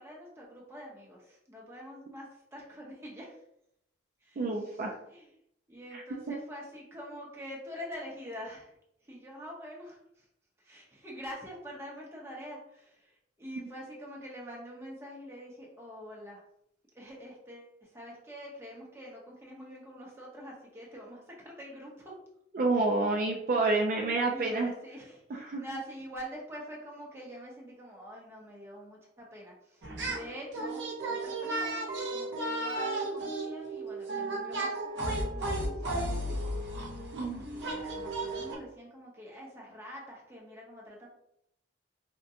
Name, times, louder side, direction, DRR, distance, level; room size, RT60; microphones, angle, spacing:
voice 1, 0.0-2.3 2.5-3.4 4.2-4.8 5.1-5.3 5.7-8.7 9.0-10.2 10.6-16.4 16.9-21.9 24.3-36.5 37.5-41.1, equal, 15° right, -3 dB, 0.7 m, -45 dB
voice 2, 4.4-4.9 5.9-6.0 22.5-24.7 25.3-25.6 37.1-37.4, right 3 dB, 45° right, 0 dB, 0.4 m, -28 dB
sound 1, 29.8-30.3 30.5-38.6, right 2 dB, 65° right, 0.8 m, -34 dB
3.5 x 2.2 x 2.7 m, 0.77 s
head